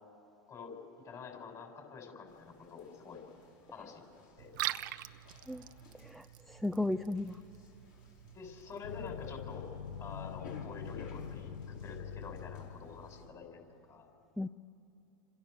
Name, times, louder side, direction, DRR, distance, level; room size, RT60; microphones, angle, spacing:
voice 1, 1.0-3.2 3.7-4.0 4.4-4.5 8.3-9.7 10.0-14.1, left 6 dB, 30° left, 2 dB, 6.6 m, -47 dB
sound 1, 2.3-13.3, left 4 dB, 65° left, 6.0 m, -58 dB
Liquid, 4.4-9.4, right 15 dB, 70° right, 0.9 m, -44 dB
voice 2, 6.0-7.4 14.4-14.5, left 2 dB, ahead, 9 dB, 0.5 m, -35 dB
sound 2, 8.8-13.4, left 6 dB, 85° left, 1.0 m, -44 dB
28.5 x 27.0 x 6.8 m, 2.7 s
hypercardioid pair, 100°, 11 cm